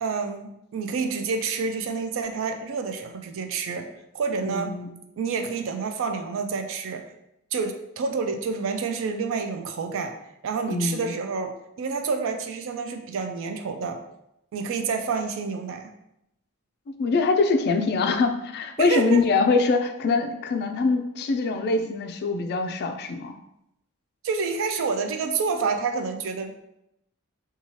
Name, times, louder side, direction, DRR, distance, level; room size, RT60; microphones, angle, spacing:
voice 1, 0.0-3.9 4.1-4.7 5.2-7.1 7.5-10.1 10.4-14.0 14.5-15.9 18.8-19.2 24.2-26.6, right 5 dB, 65° right, 6 dB, 0.4 m, -28 dB
voice 2, 4.4-4.9 10.7-11.2 17.0-23.3, left 4 dB, 50° left, 7 dB, 0.3 m, -23 dB
2.8 x 2.3 x 3.0 m, 0.83 s
head